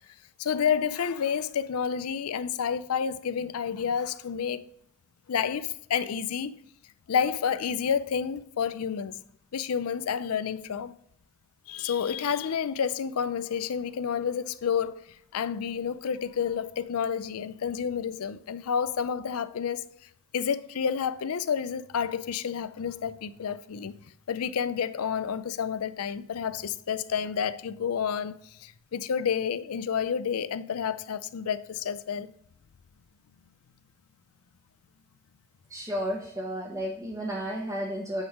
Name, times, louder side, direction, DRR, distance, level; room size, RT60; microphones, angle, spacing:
voice 1, 0.4-4.6 5.3-6.6 7.1-9.2 9.5-10.9 11.7-15.0 15.3-19.9 20.3-23.9 24.3-28.3 28.6-32.3, left 7 dB, 85° left, 0.5 m, -29 dB
voice 2, 35.7-38.2, equal, 15° right, 0.9 m, -32 dB
8.7 x 3.6 x 4.8 m
head